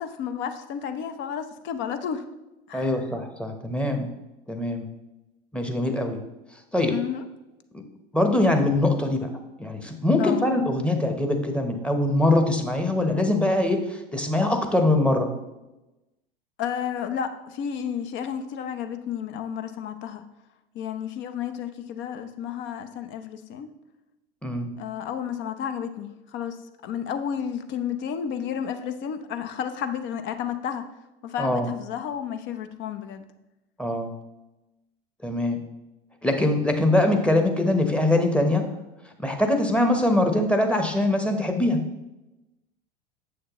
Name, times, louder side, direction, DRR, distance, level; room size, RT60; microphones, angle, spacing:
voice 1, 0.0-2.2 2.7-3.0 6.9-7.2 10.2-10.4 16.6-20.2 20.7-23.7 24.8-30.9 31.2-33.3, left 8 dB, 40° left, 9 dB, 0.7 m, -32 dB
voice 2, 2.7-4.1 4.5-4.9 5.5-6.2 6.7-6.9 8.1-9.3 9.6-15.3 24.4-24.7 31.4-31.7 33.8-34.1 35.2-35.6 36.2-38.6 39.2-41.8, left 1 dB, 5° left, 5 dB, 0.9 m, -23 dB
7.7 x 6.5 x 3.0 m, 0.99 s
hypercardioid pair, 85°, 30 cm